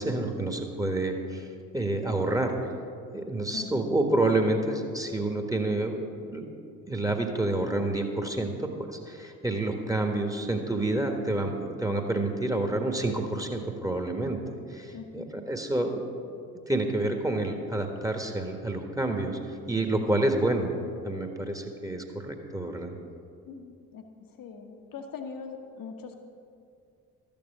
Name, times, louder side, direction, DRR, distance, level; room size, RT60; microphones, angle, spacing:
voice 1, 0.0-1.4 1.7-2.6 3.1-6.5 6.9-14.4 14.7-16.1 16.7-19.4 19.7-20.7 21.0-22.9, right 2 dB, 10° right, 4 dB, 1.4 m, -28 dB
voice 2, 3.5-3.9 9.6-9.7 14.9-15.3 20.3-20.6 23.4-26.2, left 5 dB, 50° left, 5 dB, 1.3 m, -42 dB
13.0 x 7.1 x 6.6 m, 2.4 s
figure-of-eight pair, 40°, 44 cm